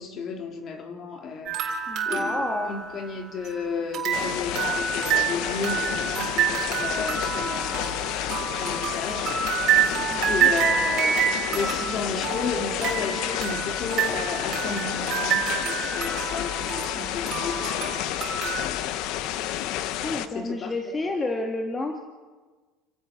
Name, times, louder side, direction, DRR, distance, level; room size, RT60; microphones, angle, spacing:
voice 1, 0.0-1.6 2.1-7.9 8.2-9.4 10.3-19.1 20.3-21.2, left 5 dB, 40° left, 3.3 m, -33 dB
sound 1, 1.5-3.5 3.9-18.6, right 8 dB, 50° right, 3.9 m, -28 dB
voice 2, 1.9-2.7 10.1-10.5 20.0-22.1, left 2 dB, 20° left, 2.1 m, -30 dB
sound 2, 4.1-20.3, left 12 dB, 65° left, 1.1 m, -30 dB
29.5 x 16.0 x 6.2 m
supercardioid pair, 110°, 0 cm